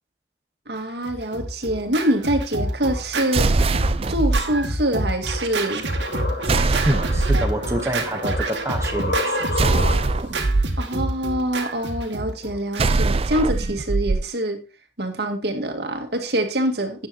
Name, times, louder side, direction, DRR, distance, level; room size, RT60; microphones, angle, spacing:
voice 1, 0.7-3.5 4.1-5.9 10.8-14.6 15.0-17.1, right 1 dB, 60° right, 5 dB, 2.1 m, -25 dB
Scratching (performance technique), 1.0-13.1, right 1 dB, 75° right, 2.1 m, -28 dB
sound 1, 3.3-4.4 6.5-7.5 9.6-10.7 12.8-14.2, right 3 dB, 35° right, 0.4 m, -21 dB
sound 2, 5.3-10.4, left 2 dB, 65° left, 5.4 m, -30 dB
voice 2, 6.8-9.8, right 1 dB, 15° right, 4 dB, 0.8 m, -27 dB
13.5 x 9.5 x 2.8 m, 0.29 s
head